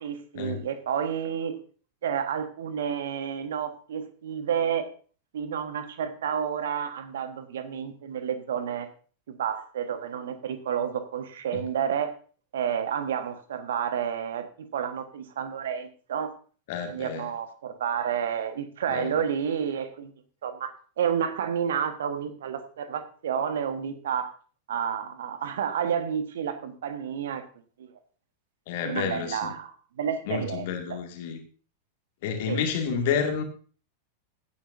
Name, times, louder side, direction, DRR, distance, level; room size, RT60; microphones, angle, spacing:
voice 1, 0.0-1.6 2.0-4.9 5.3-8.9 9.3-12.1 12.5-16.3 16.9-20.1 20.4-20.7 21.0-24.3 24.7-27.4 27.8-27.9 28.8-29.7 30.0-31.0 32.5-32.6 32.9-33.0, right 8 dB, 60° right, 9 dB, 1.4 m, -30 dB
voice 2, 16.7-17.3 18.9-19.2 28.7-29.5 30.3-31.4 32.2-33.4, left 6 dB, 50° left, 5 dB, 2.1 m, -29 dB
16.0 x 9.8 x 2.7 m, 0.40 s
figure-of-eight pair, 90°, 0 cm